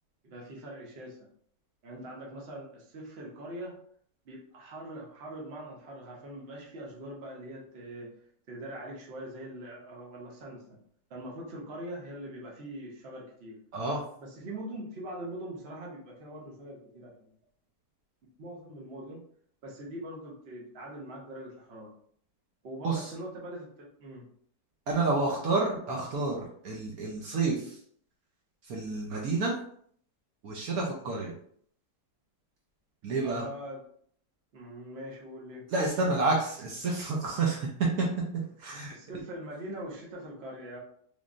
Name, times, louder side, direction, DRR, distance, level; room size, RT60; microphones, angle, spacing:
voice 1, 0.2-1.3 1.8-3.8 4.2-8.1 8.5-10.8 11.1-13.6 14.2-17.3 18.4-19.2 19.6-21.9 22.6-24.3 33.2-33.9 34.5-35.7 38.9-40.8, right 1 dB, 45° right, -2 dB, 1.0 m, -42 dB
voice 2, 24.9-27.8 28.7-29.5 30.4-31.3 33.0-33.4 35.7-37.7 38.0-38.1 38.6-38.9, right 3 dB, 65° right, -2 dB, 1.1 m, -29 dB
3.5 x 3.1 x 2.5 m, 0.62 s
omnidirectional pair, 1.7 m